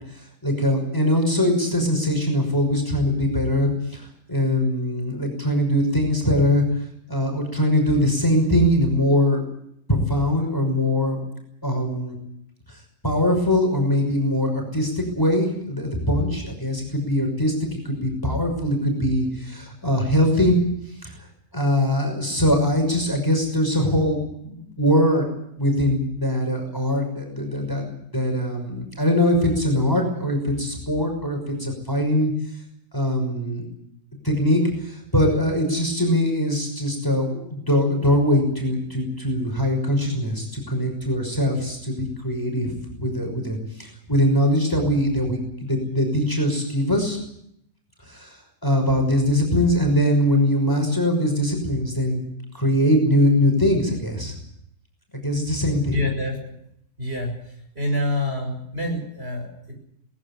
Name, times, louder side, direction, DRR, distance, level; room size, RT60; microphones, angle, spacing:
voice 1, 0.4-9.4 9.9-11.2 11.6-12.2 13.0-20.6 21.0-21.1 21.5-25.3 25.6-32.3 32.9-33.6 34.2-47.2 48.1-48.4 48.6-52.2 52.5-54.3 55.2-56.0, left 1 dB, 15° left, 3 dB, 5.9 m, -22 dB
voice 2, 55.9-56.4 57.0-59.7, left 1 dB, 40° right, 2 dB, 6.9 m, -27 dB
20.0 x 17.0 x 9.9 m, 0.73 s
omnidirectional pair, 1.7 m